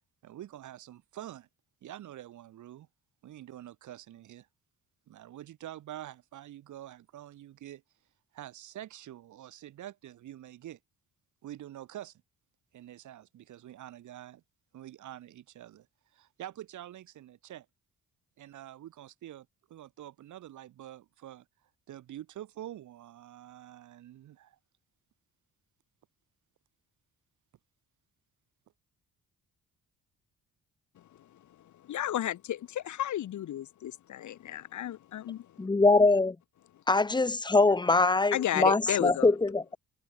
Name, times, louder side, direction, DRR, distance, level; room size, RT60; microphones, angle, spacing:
voice 1, 0.2-1.5 1.8-2.9 3.2-4.5 5.1-7.8 8.3-10.8 11.4-12.2 12.7-14.4 14.7-15.9 16.1-17.7 18.4-21.5 21.9-24.6, right 12 dB, 75° right, 3.0 m, -46 dB
voice 2, 31.0-35.7 36.7-36.8 38.3-39.3, left 12 dB, 70° left, 3.4 m, -34 dB
voice 3, 35.6-36.4 36.9-39.8, left 3 dB, 15° left, 0.7 m, -23 dB
cardioid pair, 90°, 30 cm